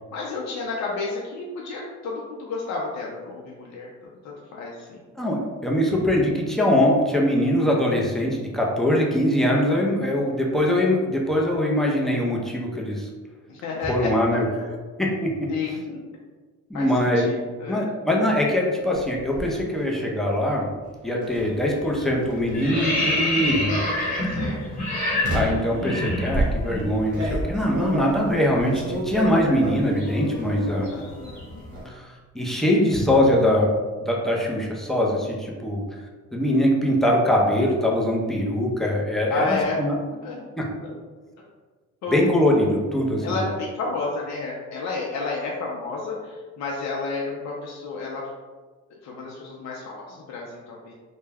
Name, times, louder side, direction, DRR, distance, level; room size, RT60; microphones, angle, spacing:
voice 1, 0.1-3.9 4.2-5.0 13.5-14.6 15.5-16.0 16.7-17.9 24.4-24.6 30.9-31.6 39.3-39.8 40.2-40.4 40.8-41.0 42.0-42.3 43.2-48.2 49.0-50.9, left 3 dB, 60° left, -3 dB, 0.5 m, -31 dB
voice 2, 5.2-13.1 13.8-14.4 15.0-15.3 16.7-17.3 17.7-20.7 21.0-23.8 25.3-30.9 31.9-32.0 32.3-33.7 34.0-35.8 36.3-40.0 40.6-40.7 42.1-43.4, left 1 dB, ahead, -3 dB, 0.5 m, -22 dB
sound 1, 18.9-19.5 21.2-21.5 22.2-23.1 23.8-24.1 25.2-25.7 26.3-30.1 30.4-31.0 31.2-31.8, right 1 dB, 50° right, 0.8 m, -30 dB
sound 2, 21.3-21.6 21.9-26.8 27.1-27.3 27.6-31.7, left 1 dB, 30° left, 1.1 m, -28 dB
2.2 x 2.1 x 3.3 m, 1.4 s
cardioid pair, 90°, 30 cm